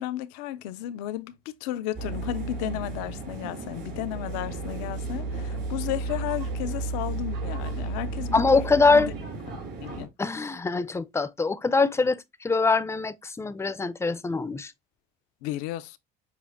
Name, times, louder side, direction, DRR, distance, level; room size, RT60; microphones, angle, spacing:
voice 1, 0.0-8.6 8.9-9.1 9.8-10.1 15.4-16.0, left 13 dB, 90° left, 0.4 m, -33 dB
sound 1, 1.9-10.1, right 3 dB, 55° right, 2.5 m, -33 dB
voice 2, 8.3-9.1 10.2-14.7, left 4 dB, 15° left, 0.4 m, -23 dB
6.6 x 2.5 x 2.5 m
supercardioid pair, 80°, 21 cm